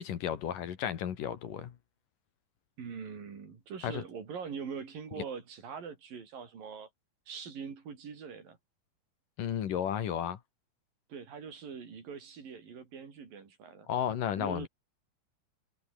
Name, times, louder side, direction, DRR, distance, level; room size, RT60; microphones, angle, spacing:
voice 1, 0.0-1.8 3.8-4.0 9.4-10.4 13.9-14.7, left 9 dB, 60° left, 3.2 m, -33 dB
voice 2, 2.8-6.9 7.3-8.6 11.1-13.9 14.4-14.7, right 6 dB, 60° right, 5.7 m, -43 dB
omnidirectional pair, 4.5 m